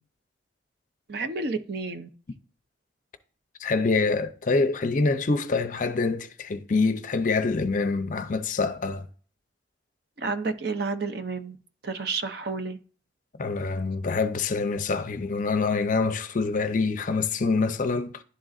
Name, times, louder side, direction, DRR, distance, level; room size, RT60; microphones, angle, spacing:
voice 1, 1.1-2.1 10.2-11.6 11.8-12.8, right 4 dB, 55° right, 0.6 m, -30 dB
voice 2, 3.6-9.1 13.4-18.2, left 4 dB, 40° left, 0.5 m, -25 dB
11.0 x 3.8 x 2.4 m
head